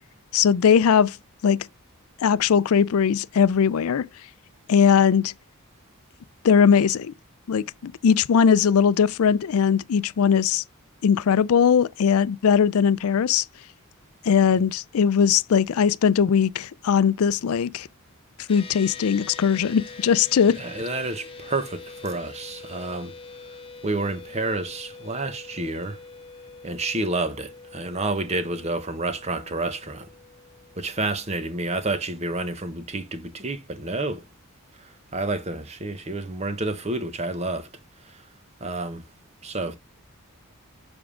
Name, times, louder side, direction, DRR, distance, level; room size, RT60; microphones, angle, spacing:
voice 1, 0.3-1.2 1.4-1.7 2.2-4.1 4.7-5.3 6.4-7.1 7.5-10.6 11.0-13.5 14.2-17.9 18.5-20.6, left 7 dB, 75° left, 0.4 m, -20 dB
sound 1, 18.5-32.1, left 4 dB, 25° left, 1.3 m, -44 dB
voice 2, 20.6-23.1 23.8-26.0 26.6-30.1 30.8-34.2 35.1-37.7 38.6-39.0 39.4-39.8, right 2 dB, 30° right, 0.9 m, -29 dB
7.2 x 3.5 x 4.9 m
head